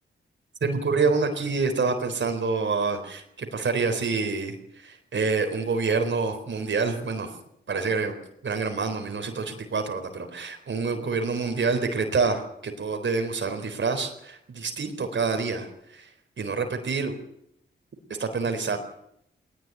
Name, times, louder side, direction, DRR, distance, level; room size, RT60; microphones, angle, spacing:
voice 1, 0.6-7.3 7.7-8.1 8.4-16.1 16.4-17.1 18.2-18.8, right 4 dB, 65° right, 5 dB, 4.1 m, -27 dB
19.5 x 19.0 x 9.4 m, 0.76 s
cardioid pair, 70°, 21 cm